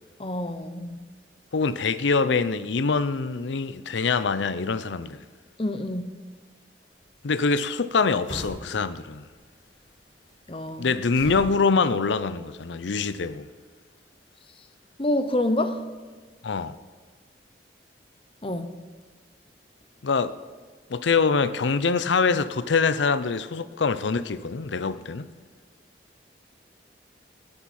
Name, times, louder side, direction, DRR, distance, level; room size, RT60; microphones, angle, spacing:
voice 1, 0.2-1.0 5.6-6.1 10.5-10.9 15.0-15.8 18.4-18.7, left 1 dB, 30° left, 0.8 m, -27 dB
voice 2, 1.5-5.2 7.2-9.3 10.8-13.5 16.4-16.7 20.0-20.3 20.9-25.3, left 4 dB, 85° left, 0.6 m, -24 dB
sound 1, 6.9-13.3, equal, 45° left, 5.3 m, -43 dB
18.5 x 10.5 x 4.3 m
head